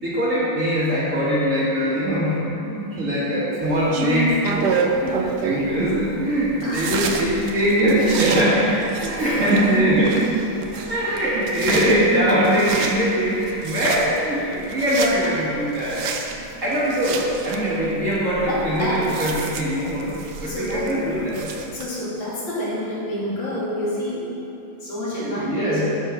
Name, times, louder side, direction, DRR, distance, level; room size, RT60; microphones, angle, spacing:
voice 1, 0.0-10.3 10.9-20.1 20.4-21.5 25.2-25.8, equal, 40° right, -8 dB, 1.8 m, -22 dB
sound 1, 3.6-21.8, right 4 dB, 65° right, 1.1 m, -30 dB
voice 2, 6.6-7.0 9.2-9.5 10.7-11.1 18.5-19.1 20.4-20.9 21.7-24.3 24.8-25.8, equal, 65° left, -7 dB, 2.8 m, -28 dB
11.5 x 4.6 x 5.0 m, 2.8 s
omnidirectional pair, 2.2 m